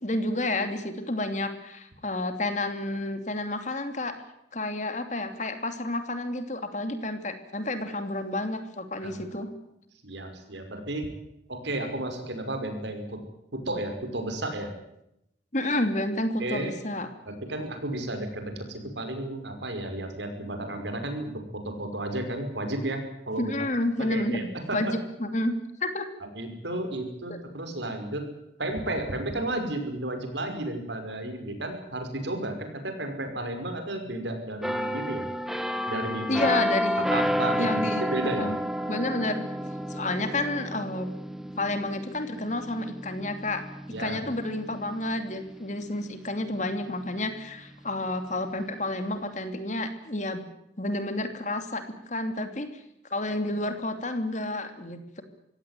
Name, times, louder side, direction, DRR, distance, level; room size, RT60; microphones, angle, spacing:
voice 1, 0.0-4.1 4.5-9.5 15.5-17.1 23.4-25.5 25.8-26.1 36.3-37.1 37.6-38.6 38.9-41.1 41.6-43.7 44.0-50.4 50.8-52.7 53.1-55.2, left 2 dB, 40° left, 8 dB, 2.9 m, -30 dB
voice 2, 10.0-11.1 11.5-13.2 13.5-14.7 16.4-16.7 17.3-23.5 24.0-24.8 26.3-28.3 28.6-35.3 35.9-36.4 37.1-38.5 43.9-44.2, right 1 dB, 70° right, 6 dB, 5.6 m, -33 dB
sound 1, 34.6-46.2 46.6-46.8, equal, ahead, 1.2 m, -31 dB
24.5 x 17.0 x 9.3 m, 0.82 s
head